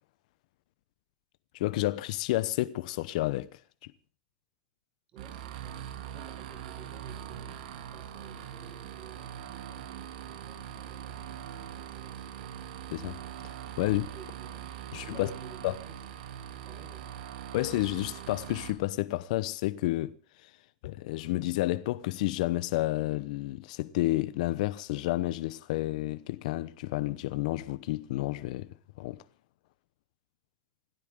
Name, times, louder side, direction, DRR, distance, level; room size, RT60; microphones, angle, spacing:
voice 1, 1.5-3.9 12.9-13.2 13.4-14.1 14.9-15.3 15.6-15.7 17.5-20.2 20.4-20.5 20.8-29.2, left 17 dB, 65° left, 0.9 m, -31 dB
voice 2, 5.1-5.8 6.0-12.5 13.9-16.0 16.6-17.1, right 5 dB, 30° right, 4.7 m, -54 dB
sound 1, 5.2-18.7, right 9 dB, 70° right, 2.9 m, -42 dB
27.0 x 12.5 x 3.7 m
supercardioid pair, 150°, 4 cm